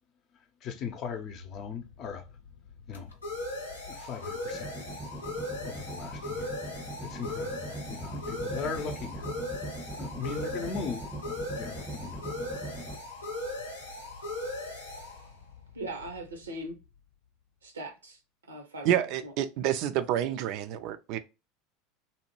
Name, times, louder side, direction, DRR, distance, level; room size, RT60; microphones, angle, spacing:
voice 1, 0.6-2.3 2.9-3.1 3.9-4.7 5.6-6.6 7.0-9.4 10.0-11.1 11.6-12.3, left 6 dB, 45° left, 0.5 m, -38 dB
sound 1, 1.3-16.7, left 1 dB, 90° left, 0.7 m, -39 dB
sound 2, 4.5-13.0, right 2 dB, ahead, 0.6 m, -40 dB
voice 2, 15.7-16.8 17.6-18.2 18.5-19.3, right 1 dB, 85° right, 0.7 m, -40 dB
voice 3, 18.8-21.2, right 11 dB, 55° right, 0.3 m, -28 dB
2.7 x 2.2 x 2.9 m
hypercardioid pair, 80°, 0 cm